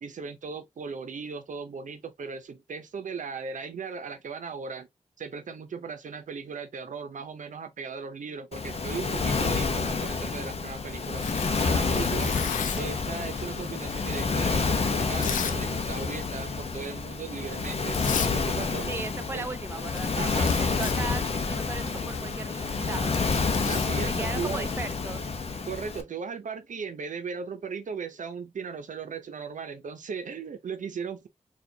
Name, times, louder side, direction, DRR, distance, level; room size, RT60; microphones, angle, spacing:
voice 1, 0.0-4.9 5.2-11.2 11.6-12.3 12.8-18.0 18.3-18.9 19.3-19.5 20.2-20.7 23.7-24.6 25.7-31.3, right 5 dB, 75° right, 0.6 m, -37 dB
Waves surf, 8.5-26.0, left 4 dB, 50° left, 0.7 m, -28 dB
Tearing, 11.2-13.0 13.7-15.6 15.9-16.3 16.7-16.9 17.6-17.7 17.9-18.3 18.6-19.1 19.4-19.5 19.7-24.9, left 8 dB, 90° left, 0.4 m, -37 dB
voice 2, 18.9-23.3 24.1-25.3, right 3 dB, 20° right, 0.4 m, -37 dB
4.3 x 2.4 x 2.7 m
cardioid pair, 65°, 13 cm